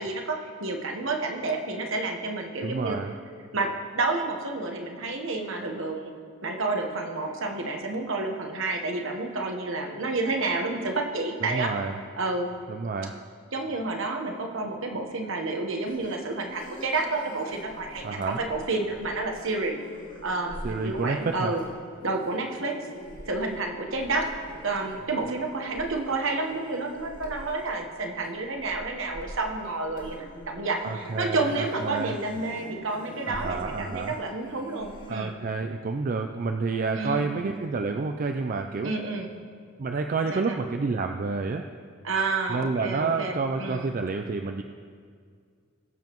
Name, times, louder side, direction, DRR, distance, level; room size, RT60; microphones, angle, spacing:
voice 1, 0.0-3.0 3.5-3.7 3.9-6.1 6.4-11.7 12.2-12.5 13.5-19.8 20.2-21.6 22.0-22.7 23.3-24.3 24.6-35.3 37.0-37.3 38.8-39.3 40.3-40.6 42.0-43.9, right 3 dB, 65° right, 3 dB, 1.1 m, -30 dB
voice 2, 2.6-3.2 11.4-12.0 12.7-13.2 18.0-18.4 20.6-21.6 30.8-32.1 33.3-34.2 35.1-38.9 39.8-41.6 42.5-44.6, right 4 dB, 40° right, 5 dB, 0.4 m, -29 dB
sound 1, 15.8-35.1, equal, 40° left, 2.1 m, -45 dB
21.0 x 7.2 x 3.0 m, 2.1 s
head